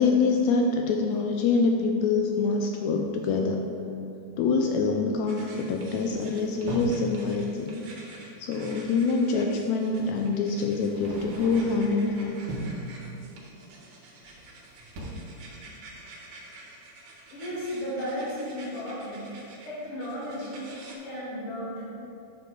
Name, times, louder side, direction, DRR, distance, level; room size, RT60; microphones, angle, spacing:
voice 1, 0.0-3.6 4.4-7.8 8.4-12.4, left 4 dB, 85° left, 2 dB, 1.6 m, -25 dB
sound 1, 5.3-20.9, right 2 dB, 80° right, 2.9 m, -49 dB
sound 2, 6.1-7.1 8.7-8.8 10.0-10.2 10.7-12.0 12.3-12.9 14.2-14.6 14.8-15.1, right 1 dB, 55° right, 1.7 m, -37 dB
voice 2, 17.3-20.7 21.0-21.8, equal, 50° left, -9 dB, 2.7 m, -34 dB
8.0 x 7.0 x 4.5 m, 2.9 s
omnidirectional pair, 3.7 m